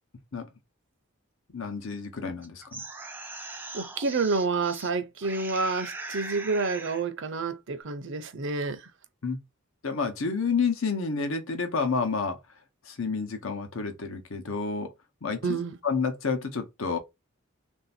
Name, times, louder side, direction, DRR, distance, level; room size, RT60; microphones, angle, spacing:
voice 1, 1.5-2.8 9.2-9.4 9.8-12.4 12.9-14.9 15.2-17.0, left 5 dB, 65° left, 0.9 m, -29 dB
sound 1, 2.4-4.9 5.2-7.1, right 3 dB, 10° right, 0.5 m, -40 dB
voice 2, 3.7-8.8 15.4-15.8, right 4 dB, 55° right, 0.6 m, -29 dB
3.4 x 2.6 x 4.2 m
head